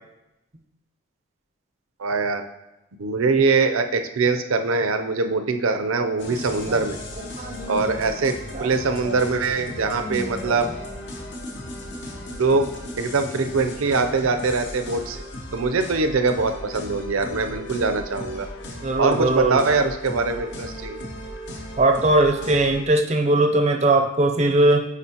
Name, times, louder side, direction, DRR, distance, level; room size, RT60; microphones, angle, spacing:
voice 1, 2.0-2.4 3.0-7.0 7.7-10.7 12.3-12.7 13.0-15.2 15.5-18.5 19.0-21.0, right 4 dB, 80° right, 8 dB, 0.5 m, -23 dB
sound 1, 6.2-22.8, left 1 dB, 55° left, 0.9 m, -36 dB
voice 2, 7.2-8.0 8.5-8.7 9.0-9.2 10.0-10.5 18.8-19.6 21.8-24.9, right 2 dB, 30° right, 5 dB, 0.5 m, -20 dB
8.2 x 4.8 x 2.9 m, 0.94 s
head